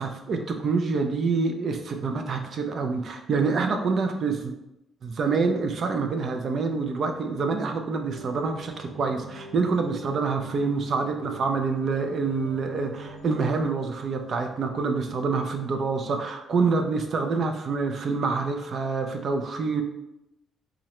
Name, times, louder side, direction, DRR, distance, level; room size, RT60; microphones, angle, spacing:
voice 1, 0.0-4.5 5.0-19.8, right 4 dB, 45° right, 5 dB, 0.3 m, -26 dB
sound 1, 8.1-13.7, equal, 70° left, 0.6 m, -44 dB
3.7 x 2.1 x 2.9 m, 0.89 s
cardioid pair, 135°, 0 cm